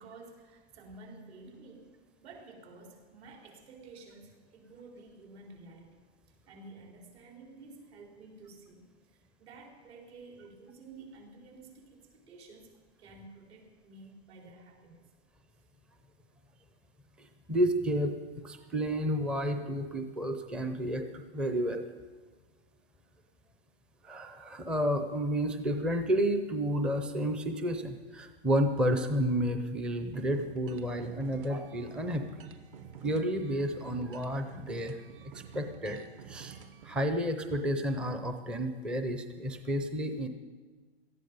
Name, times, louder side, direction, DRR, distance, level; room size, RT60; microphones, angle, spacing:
voice 1, 0.0-1.9 2.2-6.0 6.3-15.1, right 3 dB, 70° right, 0 dB, 4.5 m, -52 dB
voice 2, 17.2-18.2 18.4-21.8 24.0-32.4 33.0-35.0 35.3-36.0 36.3-36.6 36.8-40.3, equal, 5° right, 7 dB, 0.4 m, -31 dB
sound 1, 30.1-37.0, right 7 dB, 55° right, 1.3 m, -49 dB
18.0 x 13.5 x 5.4 m, 1.4 s
hypercardioid pair, 145°, 33 cm